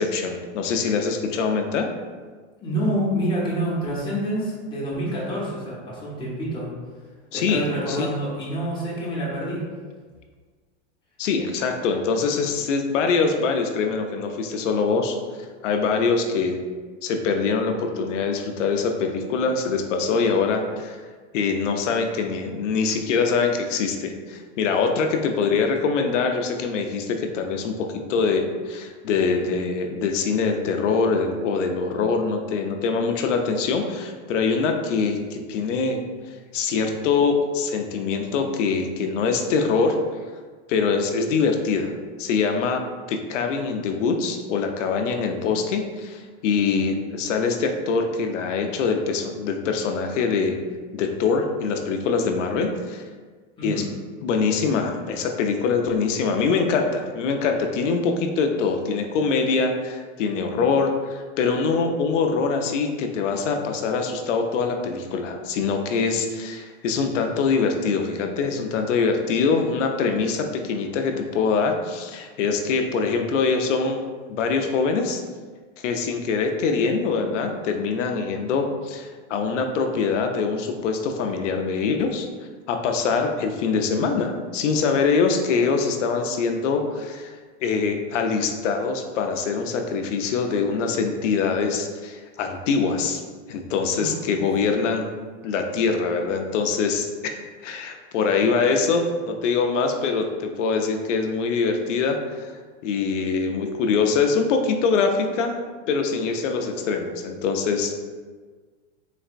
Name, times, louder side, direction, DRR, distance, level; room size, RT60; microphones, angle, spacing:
voice 1, 0.0-1.9 7.3-7.6 7.9-8.1 11.2-15.2 15.6-16.6 17.0-21.0 21.3-36.0 36.5-40.0 40.7-41.9 42.2-42.8 43.1-50.6 50.9-53.0 53.6-53.8 54.2-74.0 74.3-75.2 75.8-82.3 82.7-87.3 87.6-93.2 93.5-95.1 95.4-97.3 97.6-102.5 102.8-105.5 105.9-108.0, left 5 dB, 80° left, 5 dB, 0.6 m, -24 dB
voice 2, 2.6-6.7 7.3-9.6 53.6-53.9 93.9-94.4, right 1 dB, 15° left, -6 dB, 1.1 m, -27 dB
4.2 x 3.3 x 2.5 m, 1.5 s
supercardioid pair, 135°, 36 cm